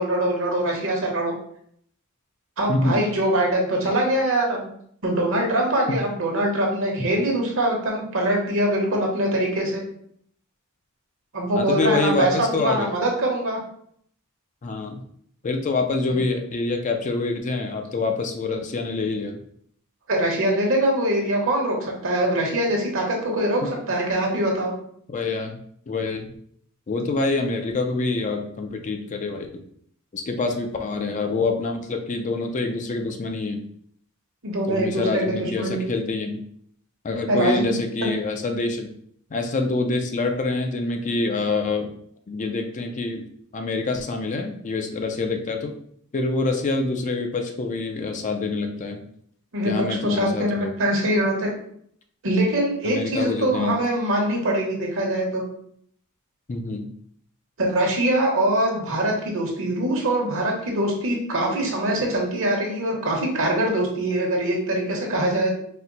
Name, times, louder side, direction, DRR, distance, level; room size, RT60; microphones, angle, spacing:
voice 1, 0.0-1.3 2.6-4.7 5.0-9.8 11.3-13.6 20.1-24.7 34.4-35.8 37.3-37.7 38.0-38.1 49.5-51.5 52.2-55.4 57.6-65.6, right 1 dB, 65° right, 0 dB, 1.1 m, -23 dB
voice 2, 2.7-3.0 5.9-6.0 11.5-12.9 14.6-15.0 15.4-19.4 23.6-23.7 25.1-25.6 25.9-26.3 26.9-29.6 30.1-33.6 34.7-36.4 37.0-38.9 39.3-41.9 42.3-43.3 43.5-45.7 46.1-49.0 49.6-50.7 52.8-53.7 56.5-56.9, left 3 dB, 35° left, 4 dB, 0.4 m, -26 dB
4.3 x 2.1 x 3.8 m, 0.65 s
head